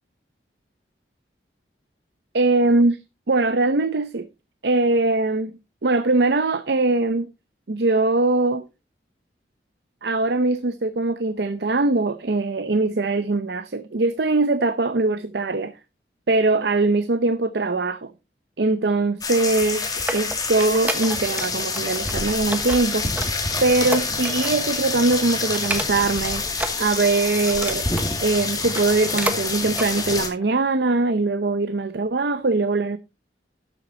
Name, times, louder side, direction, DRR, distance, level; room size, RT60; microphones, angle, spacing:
voice 1, 2.3-3.0 3.3-4.3 4.6-7.3 7.7-8.7 10.0-15.7 16.3-18.1 18.6-19.9 20.1-23.1 23.6-26.4 26.8-27.9 28.2-33.0, right 2 dB, 70° right, 0.7 m, -21 dB
sound 1, 19.2-30.3, left 3 dB, 20° left, 2.1 m, -27 dB
sound 2, 19.8-21.5 21.8-22.1 22.5-24.7 25.0-25.2 25.5-26.2 26.5-28.1 28.6-29.4 29.7-29.9 30.4-30.5, right 1 dB, 10° right, 1.1 m, -30 dB
12.0 x 7.5 x 4.0 m
head